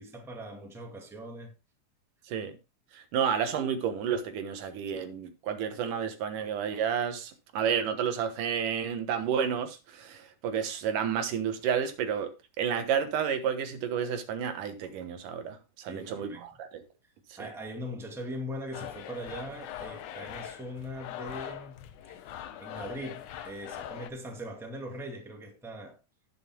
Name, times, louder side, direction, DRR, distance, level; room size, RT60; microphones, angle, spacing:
voice 1, 0.0-1.5 15.9-16.4 17.4-21.8 22.1-22.2 22.6-26.0, equal, ahead, 1.6 m, -40 dB
voice 2, 2.3-2.6 2.9-12.3 12.6-16.8 17.3-17.4, right 7 dB, 85° right, 2.9 m, -31 dB
sound 1, 18.7-24.1, left 10 dB, 75° left, 2.3 m, -42 dB
18.5 x 6.3 x 2.2 m
omnidirectional pair, 3.6 m